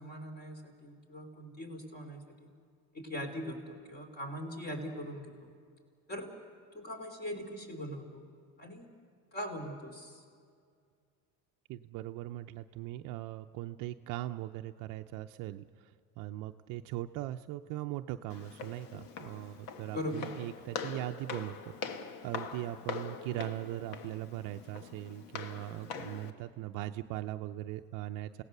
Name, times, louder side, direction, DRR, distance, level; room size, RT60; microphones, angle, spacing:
voice 1, 0.0-2.5 2.9-5.5 6.1-6.3 6.7-8.3 8.6-8.9 9.3-10.2 19.9-20.3, equal, 25° left, 5 dB, 3.4 m, -41 dB
voice 2, 11.7-28.4, right 14 dB, 65° right, 7 dB, 0.6 m, -40 dB
Walk footsteps, 18.3-26.3, left 5 dB, 70° left, 1.5 m, -43 dB
29.5 x 17.5 x 6.7 m, 2.2 s
cardioid pair, 130°, 35 cm